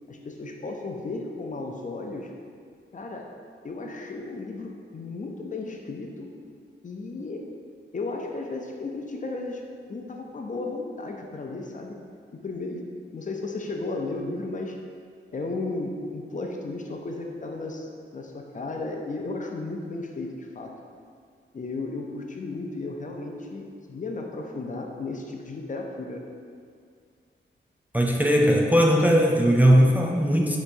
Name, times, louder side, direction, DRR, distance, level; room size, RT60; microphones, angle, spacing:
voice 1, 0.1-2.3 2.9-3.3 3.6-6.3 6.8-7.5 7.9-12.0 12.3-12.9 13.1-14.8 15.3-20.7 21.5-26.2, left 3 dB, 40° left, 1 dB, 0.5 m, -34 dB
voice 2, 27.9-30.6, equal, 10° right, 0 dB, 0.4 m, -19 dB
6.6 x 3.0 x 2.6 m, 2.2 s
cardioid pair, 70°, 20 cm